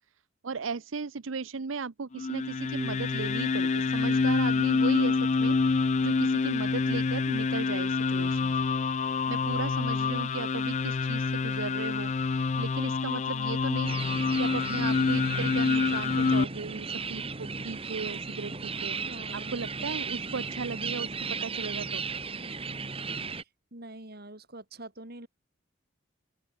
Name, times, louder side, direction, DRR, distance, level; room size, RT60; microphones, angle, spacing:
voice 1, 0.4-8.5 9.3-14.0 14.4-19.0 19.3-21.1 21.4-22.0, right 4 dB, 85° right, 0.7 m, -36 dB
sound 1, 2.1-16.4, left 4 dB, 35° left, 0.4 m, -27 dB
sound 2, 13.8-23.4, right 5 dB, 30° right, 1.9 m, -35 dB
voice 2, 19.0-19.5 23.7-25.3, right 2 dB, 50° right, 4.4 m, -45 dB
open air
head